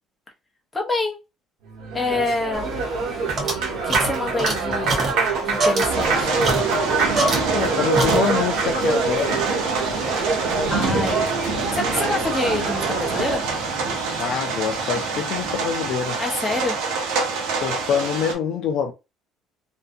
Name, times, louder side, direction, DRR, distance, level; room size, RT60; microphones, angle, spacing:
voice 1, 0.7-1.2 1.9-2.7 3.8-5.0 5.4-6.3 10.7-11.3 11.7-13.5 16.2-16.8, left 2 dB, 10° left, 0.7 m, -26 dB
Applause, 1.7-13.5, right 4 dB, 65° right, 1.2 m, -25 dB
sound 1, 2.5-7.7 7.9-8.6, right 2 dB, 30° right, 0.8 m, -26 dB
sound 2, 5.9-18.3, right 4 dB, 85° right, 0.8 m, -26 dB
voice 2, 7.5-9.5 14.2-16.2 17.6-18.9, left 8 dB, 55° left, 0.4 m, -25 dB
2.6 x 2.2 x 2.6 m
cardioid pair, 155°, 0 cm